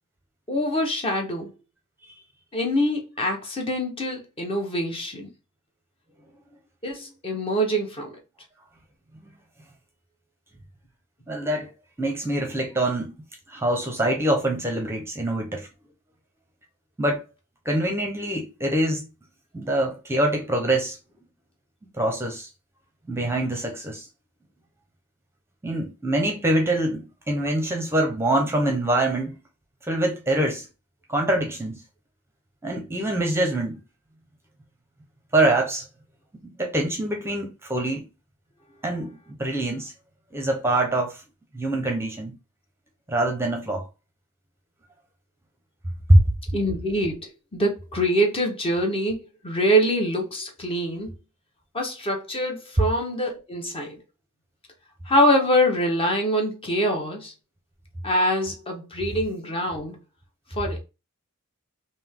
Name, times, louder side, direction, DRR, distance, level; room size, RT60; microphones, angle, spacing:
voice 1, 0.5-1.5 2.5-5.3 6.8-8.2 46.5-51.1 51.7-54.0 55.1-57.3 58.0-60.0 60.5-60.8, equal, 25° left, 0.8 m, -24 dB
voice 2, 11.3-11.7 12.0-13.1 13.5-15.7 17.0-17.2 17.7-19.1 19.5-21.0 22.0-22.5 23.1-24.0 25.6-29.4 29.8-30.7 31.1-31.8 32.6-33.8 35.3-35.8 36.4-38.0 38.8-39.1 39.4-39.9 40.3-41.2 41.5-42.3 43.1-43.9 46.1-46.2, right 1 dB, 10° right, 0.7 m, -24 dB
3.4 x 2.7 x 3.5 m
head